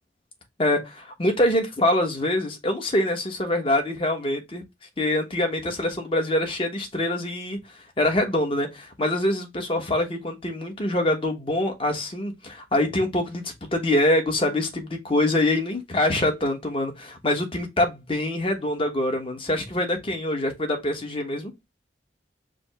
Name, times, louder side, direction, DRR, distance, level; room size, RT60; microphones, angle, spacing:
voice 1, 0.6-4.6 5.0-7.6 8.0-21.5, left 1 dB, 30° left, 1.0 m, -24 dB
5.0 x 2.0 x 4.6 m
head